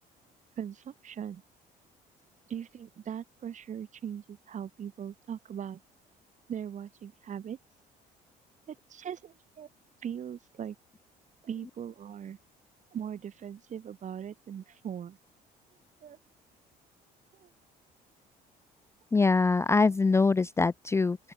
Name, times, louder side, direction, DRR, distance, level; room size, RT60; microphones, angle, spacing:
voice 1, 0.6-1.4 2.5-5.8 6.5-7.6 8.7-9.7 10.0-10.8 11.4-12.4 12.9-15.2 16.0-16.2 17.3-17.5, right 8 dB, 45° right, 2.7 m, -40 dB
voice 2, 19.1-21.2, left 4 dB, 15° left, 0.4 m, -23 dB
open air
cardioid pair, 110°, 17 cm